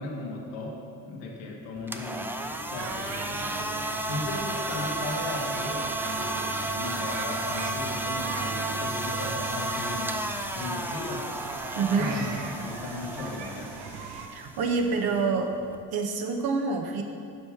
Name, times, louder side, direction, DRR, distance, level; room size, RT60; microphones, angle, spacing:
voice 1, 0.0-3.7 4.1-10.2 10.5-11.3 12.0-13.9, left 2 dB, 80° left, -1 dB, 1.4 m, -37 dB
sound 1, 1.8-15.8, right 1 dB, 5° right, 0.5 m, -33 dB
sound 2, 2.8-14.3, right 4 dB, 80° right, 0.8 m, -39 dB
voice 2, 11.8-12.2 14.3-15.5 15.9-17.0, right 4 dB, 60° right, 4 dB, 1.0 m, -27 dB
7.7 x 5.6 x 4.6 m, 2.3 s
hypercardioid pair, 50°, 41 cm